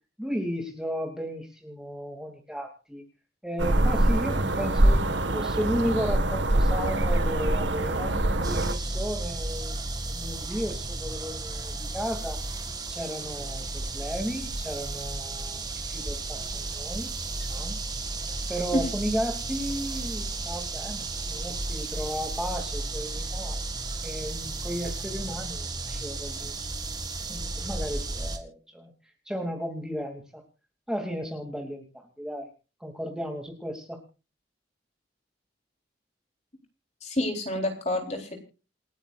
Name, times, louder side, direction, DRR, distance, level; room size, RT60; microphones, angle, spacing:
voice 1, 0.2-3.0 3.4-9.7 10.1-12.4 12.9-17.1 17.5-17.8 18.5-23.6 24.0-26.5 27.3-28.9 29.3-30.4 30.9-32.5 32.8-34.0, equal, 5° right, 2 dB, 2.7 m, -34 dB
sound 1, 3.6-8.7, right 1 dB, 85° right, 1.6 m, -24 dB
sound 2, 8.4-28.4, right 2 dB, 20° right, 1.9 m, -33 dB
voice 2, 37.0-38.4, left 1 dB, 35° left, 3 dB, 3.9 m, -28 dB
28.5 x 9.7 x 2.5 m, 0.34 s
head